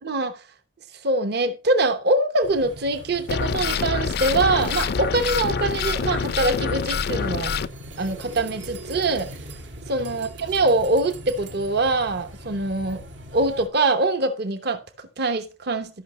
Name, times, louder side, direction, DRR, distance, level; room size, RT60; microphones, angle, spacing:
voice 1, 0.0-0.4 1.0-7.5 8.0-9.3 9.9-13.0 13.3-16.0, right 2 dB, 60° right, 1.0 m, -23 dB
sound 1, 2.4-13.7, right 1 dB, 80° right, 1.8 m, -41 dB
sound 2, 3.3-7.7, left 5 dB, 55° left, 0.4 m, -26 dB
13.5 x 5.7 x 3.1 m
head